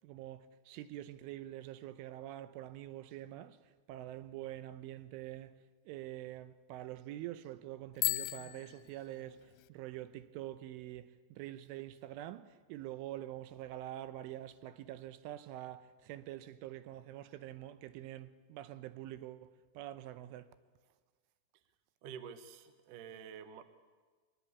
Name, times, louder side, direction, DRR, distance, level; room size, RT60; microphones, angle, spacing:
voice 1, 0.0-5.5 5.9-20.5, right 13 dB, 80° right, 3.3 m, -46 dB
Bicycle bell, 7.9-9.7, left 20 dB, 80° left, 3.0 m, -37 dB
voice 2, 22.0-23.6, right 7 dB, 65° right, 2.1 m, -48 dB
23.5 x 21.5 x 8.4 m
omnidirectional pair, 5.6 m